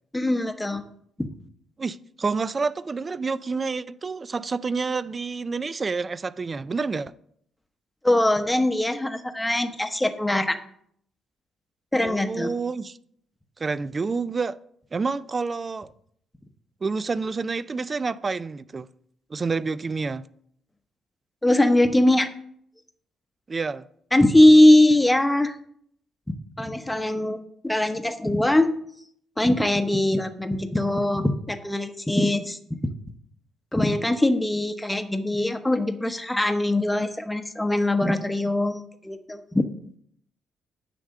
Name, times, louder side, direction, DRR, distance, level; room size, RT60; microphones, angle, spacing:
voice 1, 0.1-0.8 1.2-1.3 8.0-10.6 11.9-12.5 21.4-22.3 24.1-25.6 26.6-28.7 29.4-32.6 33.7-39.7, left 1 dB, 10° left, 0.8 m, -21 dB
voice 2, 1.8-7.1 12.0-13.0 13.6-14.6 14.9-15.9 16.8-18.9 19.3-20.3 23.5-23.9, right 4 dB, 30° right, 0.4 m, -28 dB
9.9 x 3.5 x 6.6 m
cardioid pair, 90°, 0 cm